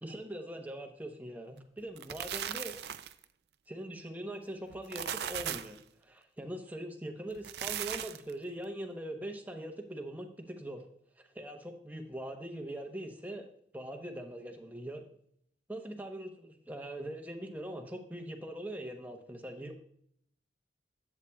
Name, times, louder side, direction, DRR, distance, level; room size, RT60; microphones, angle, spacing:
voice 1, 0.0-2.8 3.7-10.8 11.2-13.5 13.7-15.0 15.7-19.7, right 1 dB, 10° right, 4 dB, 0.9 m, -42 dB
bite in crunchy bread, 1.8-3.2 4.7-5.8 7.3-8.3, right 10 dB, 70° right, 0.4 m, -38 dB
11.5 x 8.3 x 2.3 m, 0.67 s
head